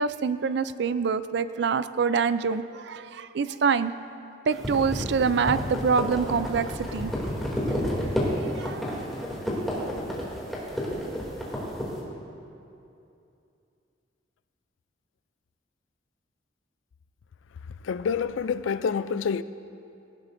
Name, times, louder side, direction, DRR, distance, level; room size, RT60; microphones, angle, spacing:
voice 1, 0.0-3.9 4.5-7.1 8.4-8.8, right 5 dB, 60° right, 13 dB, 0.4 m, -26 dB
sound 1, 4.5-11.9, equal, ahead, 2.6 m, -30 dB
voice 2, 17.9-19.4, left 6 dB, 85° left, 14 dB, 0.4 m, -27 dB
18.5 x 15.5 x 2.6 m, 2.7 s
head